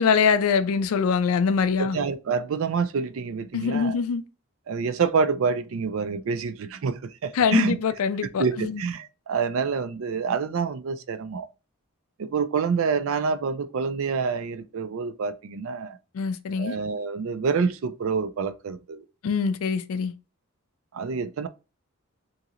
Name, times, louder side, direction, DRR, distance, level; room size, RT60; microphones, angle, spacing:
voice 1, 0.0-2.0 3.5-4.2 7.4-8.8 16.1-16.8 19.2-20.1, left 6 dB, 75° left, 0.4 m, -23 dB
voice 2, 1.8-4.0 4.7-7.8 8.4-11.5 12.2-16.0 16.6-19.0 20.9-21.5, right 5 dB, 65° right, 0.4 m, -27 dB
3.0 x 2.8 x 2.5 m
head